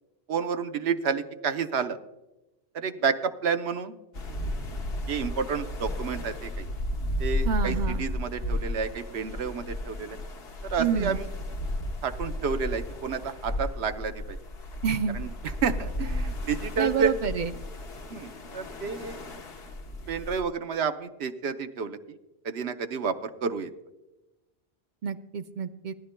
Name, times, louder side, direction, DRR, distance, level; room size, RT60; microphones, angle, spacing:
voice 1, 0.3-2.0 2.7-4.0 5.1-6.7 7.2-10.2 10.6-11.3 12.0-14.4 15.1-15.3 15.6-17.1 18.1-19.2 20.1-22.2 22.4-23.7, right 6 dB, 80° right, 8 dB, 1.0 m, -30 dB
sound 1, 4.1-20.4, left 1 dB, 70° left, 1.3 m, -34 dB
voice 2, 7.4-8.0 10.8-11.2 14.8-15.2 16.8-17.5 25.0-25.9, right 7 dB, 55° right, 10 dB, 0.6 m, -28 dB
20.0 x 11.5 x 2.2 m, 0.99 s
omnidirectional pair, 1.1 m